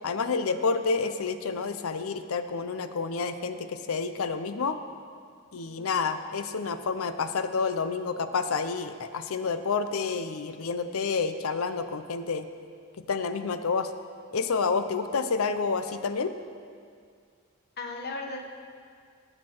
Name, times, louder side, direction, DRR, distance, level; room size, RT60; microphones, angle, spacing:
voice 1, 0.0-4.8 5.5-12.5 13.1-13.9 14.3-16.3, left 4 dB, 90° left, 10 dB, 0.6 m, -29 dB
voice 2, 5.6-5.9 17.8-18.5, left 3 dB, 50° left, 1 dB, 1.2 m, -37 dB
16.5 x 6.6 x 4.5 m, 2.2 s
head